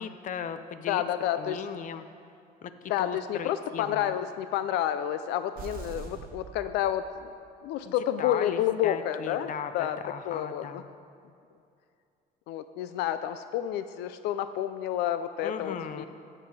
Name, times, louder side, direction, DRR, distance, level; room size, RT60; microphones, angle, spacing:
voice 1, 0.0-1.0 1.4-2.1 2.6-2.7 3.0-4.1 7.8-10.9 15.4-16.1, left 7 dB, 50° left, 11 dB, 0.7 m, -37 dB
voice 2, 0.9-1.6 2.9-7.3 7.6-10.0 10.2-10.8 12.5-16.0, left 11 dB, 85° left, 11 dB, 0.4 m, -30 dB
sound 1, 5.6-7.4, right 6 dB, 60° right, 1.2 m, -43 dB
14.5 x 7.8 x 4.7 m, 2.5 s
cardioid pair, 110°, 17 cm